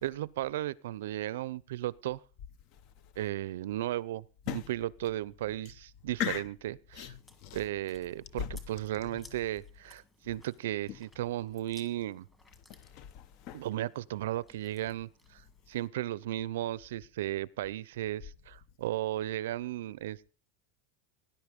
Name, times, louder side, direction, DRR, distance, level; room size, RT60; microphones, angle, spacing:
voice 1, 0.0-2.2 3.2-4.2 4.5-7.1 7.5-12.2 13.5-15.4 15.7-20.3, right 14 dB, 75° right, 0.6 m, -35 dB
voice 2, 6.9-7.6 8.4-8.5 12.7-13.7, left 10 dB, 35° left, 0.9 m, -37 dB
Chewing mastication, 7.0-15.9, left 1 dB, 10° left, 1.8 m, -61 dB
18.5 x 10.5 x 5.3 m
supercardioid pair, 175°, 0 cm